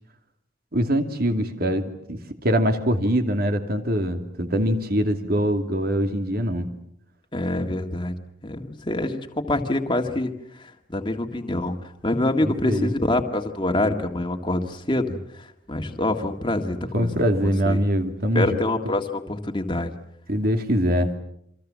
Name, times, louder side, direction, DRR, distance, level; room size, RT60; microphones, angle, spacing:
voice 1, 0.7-6.7 12.4-12.9 16.9-18.5 20.3-21.1, equal, 50° right, 6 dB, 2.7 m, -23 dB
voice 2, 7.3-8.2 8.4-10.3 10.6-11.8 12.0-17.1 17.4-17.8 18.3-19.9, left 1 dB, 25° left, 4 dB, 2.0 m, -26 dB
28.5 x 25.0 x 7.5 m, 0.75 s
head